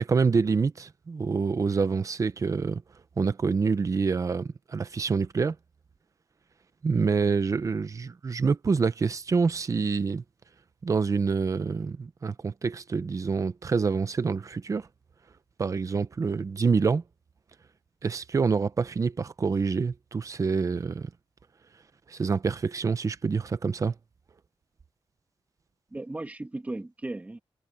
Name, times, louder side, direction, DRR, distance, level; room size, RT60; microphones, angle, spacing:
voice 1, 0.0-2.8 3.2-5.6 6.8-10.2 10.8-14.9 15.6-17.0 18.0-21.1 22.1-23.9, right 5 dB, 35° right, 0.8 m, -26 dB
voice 2, 25.9-27.4, right 2 dB, 15° right, 2.7 m, -36 dB
wide cardioid pair, 165°, 10 cm